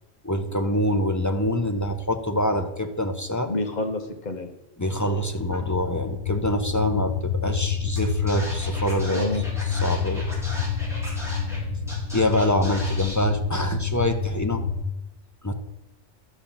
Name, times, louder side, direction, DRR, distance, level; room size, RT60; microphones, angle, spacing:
voice 1, 0.2-3.5 4.8-9.3 9.6-10.6 12.1-14.6 15.4-15.5, left 1 dB, 20° left, 5 dB, 0.6 m, -25 dB
voice 2, 3.5-4.5 9.1-9.4, left 2 dB, 35° left, 4 dB, 1.3 m, -29 dB
sound 1, 4.8-14.8, left 5 dB, 75° left, 1.1 m, -28 dB
Scratching (performance technique), 7.9-8.0 8.3-11.6 11.9-13.2, equal, ahead, 3.6 m, -37 dB
11.5 x 7.1 x 5.7 m, 0.96 s
omnidirectional pair, 1.3 m